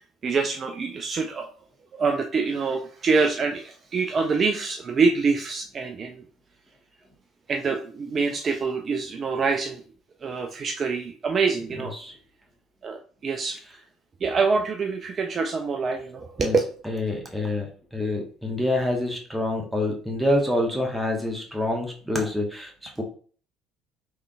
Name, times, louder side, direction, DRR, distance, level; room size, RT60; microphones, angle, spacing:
voice 1, 0.0-1.5 1.9-6.2 7.5-9.8 10.2-11.9 12.8-13.6 14.2-16.6, right 4 dB, 40° right, 3 dB, 0.4 m, -25 dB
voice 2, 16.9-23.0, left 1 dB, 5° right, 1 dB, 1.2 m, -27 dB
3.7 x 3.2 x 2.3 m, 0.43 s
figure-of-eight pair, 55°, 0 cm